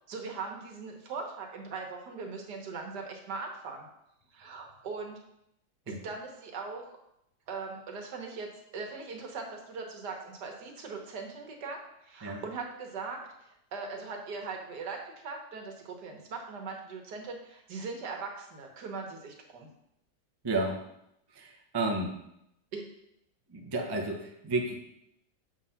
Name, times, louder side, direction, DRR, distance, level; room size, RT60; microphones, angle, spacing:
voice 1, 0.1-3.8 4.3-5.2 5.9-7.0 7.5-8.5 8.7-13.2 13.7-19.7 22.7-22.8, right 4 dB, 65° right, 2 dB, 1.6 m, -40 dB
voice 2, 20.4-20.8 21.3-22.1 23.5-24.8, right 2 dB, 25° right, 1 dB, 0.5 m, -32 dB
7.3 x 3.8 x 5.6 m, 0.80 s
omnidirectional pair, 2.0 m